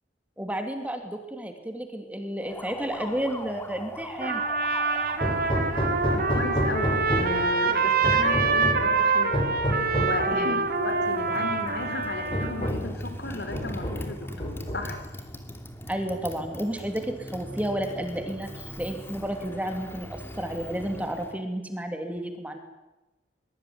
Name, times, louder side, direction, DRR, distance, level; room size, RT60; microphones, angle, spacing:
voice 1, 0.4-4.4 10.3-10.6 15.9-22.6, right 1 dB, 10° right, 5 dB, 2.9 m, -32 dB
Motorcycle, 2.4-21.4, left 1 dB, 15° left, 2.8 m, -41 dB
Trumpet, 4.2-12.7, right 4 dB, 55° right, 3.1 m, -26 dB
Hammer, 5.2-7.5 8.0-8.9 9.3-10.2 11.3-11.4 11.8-11.9 12.3-13.0 13.5-14.1 14.4-15.1, equal, 30° left, 6.8 m, -29 dB
voice 2, 6.1-9.4 9.9-15.0, left 2 dB, 65° left, 7 dB, 5.1 m, -34 dB
24.0 x 23.0 x 9.7 m, 1.0 s
head